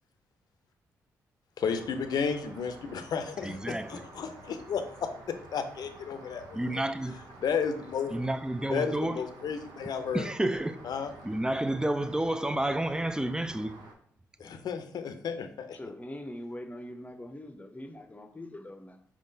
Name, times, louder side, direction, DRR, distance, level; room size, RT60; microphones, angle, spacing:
voice 1, 1.6-6.6 7.4-8.1 8.7-10.3 10.8-11.1 14.4-15.8, left 6 dB, 65° left, 0.6 m, -33 dB
Rain, 1.6-13.9, right 2 dB, 70° right, 0.9 m, -50 dB
voice 2, 3.4-4.0 6.5-7.2 8.1-9.2 10.1-10.8 11.2-13.8, right 1 dB, 10° right, 0.4 m, -30 dB
voice 3, 15.7-19.0, left 1 dB, 20° left, 0.7 m, -42 dB
4.6 x 3.6 x 2.7 m
hypercardioid pair, 45°, 7 cm